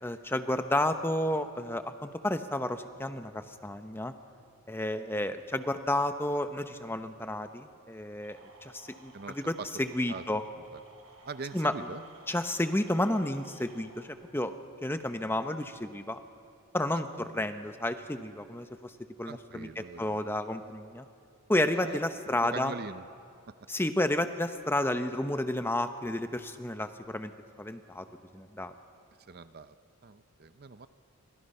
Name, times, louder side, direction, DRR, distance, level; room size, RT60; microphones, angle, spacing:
voice 1, 0.0-4.1 4.7-10.4 11.5-11.7 12.3-14.5 14.8-16.2 16.7-18.9 19.2-21.1 21.5-22.7 23.7-27.3 27.6-28.1 28.3-28.7, left 1 dB, 10° left, 8 dB, 0.9 m, -31 dB
sound 1, 8.2-14.1, right 2 dB, 85° right, 4.9 m, -56 dB
voice 2, 9.1-9.7 10.1-10.3 10.5-10.8 11.2-12.0 16.9-17.2 19.3-20.2 21.7-22.0 22.4-23.1 29.3-29.7 30.0-30.9, right 4 dB, 45° right, 12 dB, 0.6 m, -42 dB
29.0 x 25.5 x 5.6 m, 2.4 s
head